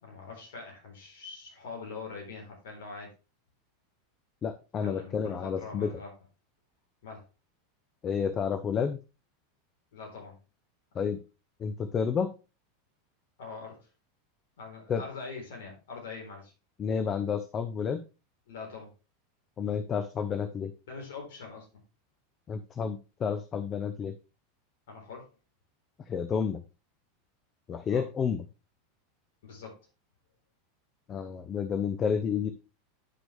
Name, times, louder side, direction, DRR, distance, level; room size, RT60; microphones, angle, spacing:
voice 1, 0.0-3.1 4.8-6.1 7.0-7.2 9.9-10.4 13.4-13.9 14.6-16.5 18.5-18.9 20.9-21.8 24.9-25.3 27.9-28.0 29.4-29.9, left 4 dB, 65° left, 0 dB, 3.9 m, -43 dB
voice 2, 4.4-5.9 8.0-9.0 10.9-11.2 11.6-12.3 14.9-15.0 16.8-18.0 19.6-20.7 22.5-24.1 26.1-26.6 27.7-28.4 31.1-32.5, left 6 dB, 30° left, 11 dB, 0.6 m, -30 dB
9.7 x 6.1 x 3.4 m, 0.31 s
figure-of-eight pair, 85°, 0 cm